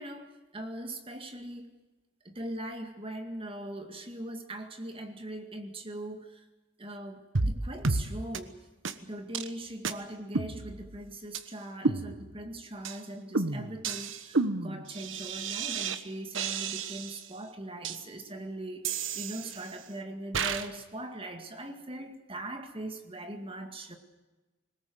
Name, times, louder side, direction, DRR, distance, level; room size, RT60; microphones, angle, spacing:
voice 1, 0.0-1.7 2.2-6.5 6.8-8.6 9.0-24.0, right 1 dB, 30° right, 6 dB, 2.1 m, -41 dB
sound 1, 7.3-7.6 7.8-8.0 8.3-8.4 8.8-8.9 9.3-9.5 9.8-9.9 10.3-11.0 11.3-11.4 11.8-12.5 12.8-13.0 13.3-16.0 16.3-17.3 17.8-18.0 18.8-19.8 20.3-20.7, right 4 dB, 80° right, 1.3 m, -31 dB
22.0 x 20.0 x 7.9 m, 1.2 s
head